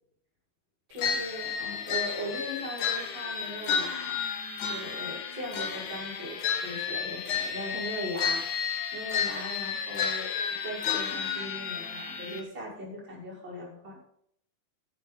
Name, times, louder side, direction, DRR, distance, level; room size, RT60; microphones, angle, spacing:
voice 1, 0.9-4.2 4.7-10.3 10.6-14.0, equal, 30° right, -5 dB, 6.6 m, -39 dB
sound 1, 1.0-12.4, left 7 dB, 60° left, 2.6 m, -32 dB
13.5 x 12.0 x 4.1 m, 0.69 s
omnidirectional pair, 4.4 m